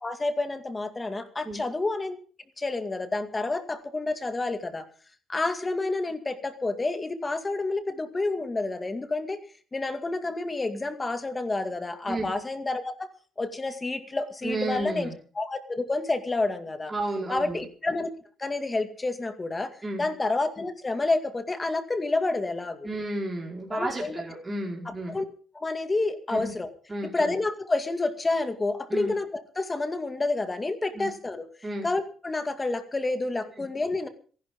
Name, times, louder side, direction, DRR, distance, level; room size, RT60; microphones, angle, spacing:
voice 1, 0.0-2.2 2.6-4.8 5.3-9.4 9.7-13.1 13.4-15.1 15.4-16.9 17.3-18.1 18.4-19.7 20.0-22.9 23.7-24.2 25.1-25.3 25.5-26.7 27.1-31.4 31.8-34.1, left 2 dB, 25° left, 8 dB, 2.2 m, -29 dB
voice 2, 14.4-15.1 16.9-17.6 19.8-20.0 22.8-25.1 26.3-26.5 26.9-27.3 28.9-29.1 30.9-31.1 31.6-31.9, right 2 dB, 20° right, -2 dB, 4.7 m, -32 dB
26.5 x 11.5 x 3.7 m, 0.43 s
cardioid pair, 90°, 0 cm